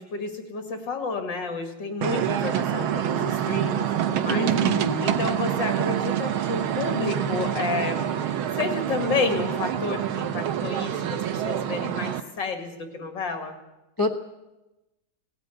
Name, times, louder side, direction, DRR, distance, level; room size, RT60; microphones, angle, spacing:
voice 1, 0.0-4.5 4.8-13.6, left 4 dB, 65° left, 6 dB, 2.8 m, -31 dB
sound 1, 2.0-12.2, right 10 dB, 90° right, 1.8 m, -26 dB
voice 2, 4.3-5.1 14.0-14.2, left 1 dB, 20° left, 2 dB, 0.6 m, -27 dB
18.5 x 15.0 x 9.3 m, 1.0 s
omnidirectional pair, 2.2 m